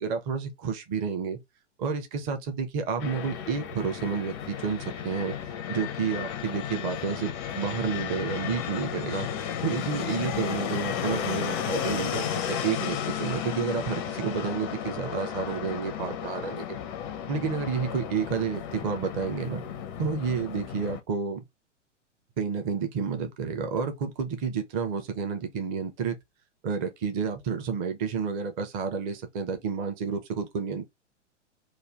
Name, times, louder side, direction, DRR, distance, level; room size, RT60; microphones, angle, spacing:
voice 1, 0.0-1.4 1.8-5.4 5.7-9.3 9.6-16.8 17.3-19.6 20.0-21.4 22.4-26.2 26.6-30.9, right 6 dB, 25° right, 0.6 m, -30 dB
Fixed-wing aircraft airplane, 3.0-21.0, left 9 dB, 20° left, 0.4 m, -33 dB
3.2 x 2.3 x 3.4 m
figure-of-eight pair, 110°, 37 cm